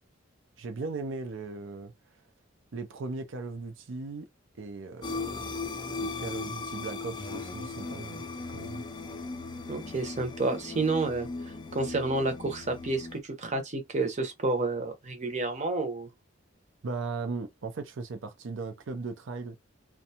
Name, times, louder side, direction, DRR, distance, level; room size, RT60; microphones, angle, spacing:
voice 1, 0.6-1.9 2.7-4.3 4.6-8.8 16.8-19.6, right 3 dB, 70° right, 0.5 m, -38 dB
sound 1, 5.0-13.2, left 3 dB, 25° left, 0.4 m, -38 dB
voice 2, 9.7-16.1, right 2 dB, 40° right, 0.8 m, -30 dB
2.6 x 2.2 x 2.8 m
head